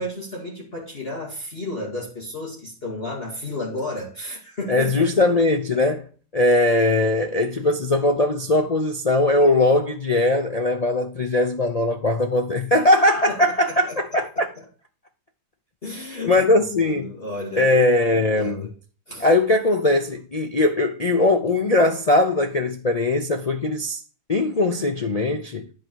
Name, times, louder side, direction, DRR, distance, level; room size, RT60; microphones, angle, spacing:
voice 1, 0.0-5.3 13.3-13.4 13.9-14.6 15.8-18.7 19.1-19.3, left 2 dB, 35° left, 2.3 m, -33 dB
voice 2, 4.7-6.0 6.3-14.5 16.3-17.1 17.6-18.7 19.2-24.0 24.3-25.7, left 2 dB, 85° left, 0.3 m, -20 dB
10.5 x 4.6 x 4.5 m
omnidirectional pair, 1.9 m